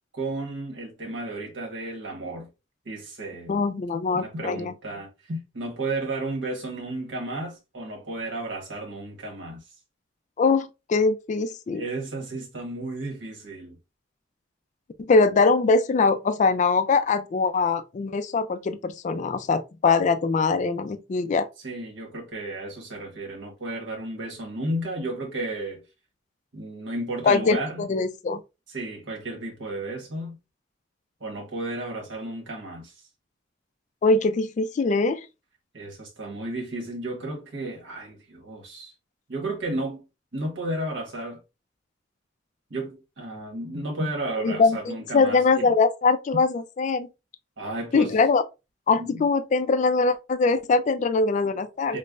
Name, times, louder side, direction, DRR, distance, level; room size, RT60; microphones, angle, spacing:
voice 1, 0.1-2.5 2.8-3.6 3.9-9.6 11.7-13.8 21.6-25.8 26.5-27.9 28.7-30.4 31.2-32.9 35.7-38.9 39.3-40.0 40.3-41.4 42.7-45.7 47.6-48.1 49.0-49.2 51.9-52.0, right 2 dB, 75° right, 1.2 m, -33 dB
voice 2, 3.5-4.7 10.4-11.8 15.0-21.5 27.2-28.4 34.0-35.3 44.4-47.1 47.9-48.4 48.9-52.0, left 4 dB, 40° left, 0.3 m, -22 dB
5.2 x 2.1 x 2.4 m
head